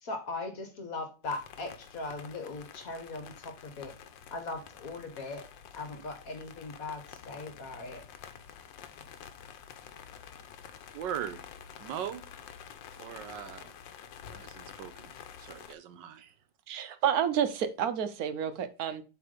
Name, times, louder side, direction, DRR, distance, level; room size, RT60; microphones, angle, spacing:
voice 1, 0.0-3.9 4.3-5.4 5.7-8.0, left 3 dB, 50° left, 1.8 m, -39 dB
sound 1, 1.2-15.7, left 8 dB, 90° left, 1.5 m, -49 dB
voice 2, 10.9-11.4 11.8-12.2 13.0-13.7 14.3-15.1 15.4-16.3, right 9 dB, 80° right, 1.5 m, -39 dB
voice 3, 16.7-19.0, right 9 dB, 65° right, 1.1 m, -30 dB
8.1 x 3.8 x 5.0 m
omnidirectional pair, 2.0 m